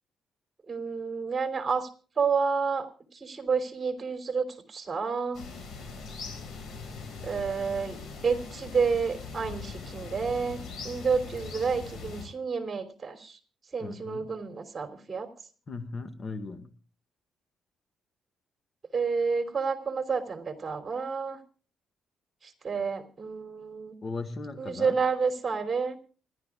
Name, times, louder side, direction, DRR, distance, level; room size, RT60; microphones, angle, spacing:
voice 1, 0.7-1.9 2.2-2.9 3.1-5.4 7.2-13.4 13.7-15.3 18.9-21.4 22.4-23.9 24.6-26.0, right 5 dB, 35° right, 6 dB, 3.2 m, -30 dB
sound 1, 5.3-12.3, left 4 dB, 65° left, 6.3 m, -41 dB
voice 2, 13.8-14.3 15.7-16.7 24.0-25.0, left 3 dB, 40° left, 10 dB, 1.7 m, -37 dB
28.0 x 12.0 x 2.4 m, 0.39 s
cardioid pair, 90°, 0 cm